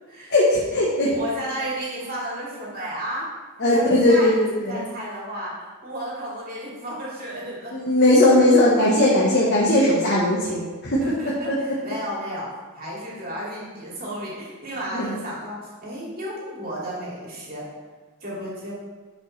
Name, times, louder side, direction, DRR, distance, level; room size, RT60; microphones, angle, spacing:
voice 1, 0.3-1.2 3.6-4.8 7.7-11.0 14.9-15.1, left 1 dB, 50° left, -5 dB, 1.2 m, -18 dB
voice 2, 0.8-3.3 3.7-7.7 11.0-12.5 12.7-17.6 18.2-18.7, equal, 40° right, -5 dB, 2.5 m, -33 dB
10.5 x 5.3 x 3.3 m, 1.3 s
head